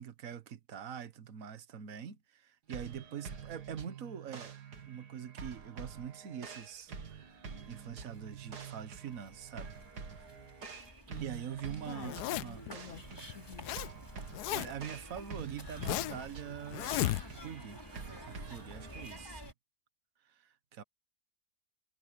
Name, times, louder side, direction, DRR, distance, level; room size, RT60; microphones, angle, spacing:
voice 1, 0.0-4.6 4.9-9.7 10.1-10.2 11.2-12.7 14.5-17.8 18.2-19.5 20.2-20.8, right 8 dB, 60° right, 1.6 m, -44 dB
sound 1, 2.7-19.4, right 6 dB, 90° right, 2.5 m, -47 dB
sound 2, 6.7-6.8 7.0-19.5, equal, 15° left, 6.0 m, -52 dB
voice 2, 11.8-13.7, left 7 dB, 60° left, 1.1 m, -50 dB
Zipper (clothing), 12.0-12.7 13.3-13.9 14.1-14.9 15.4-16.3 16.7-17.5, left 15 dB, 85° left, 1.1 m, -34 dB
omnidirectional pair, 1.7 m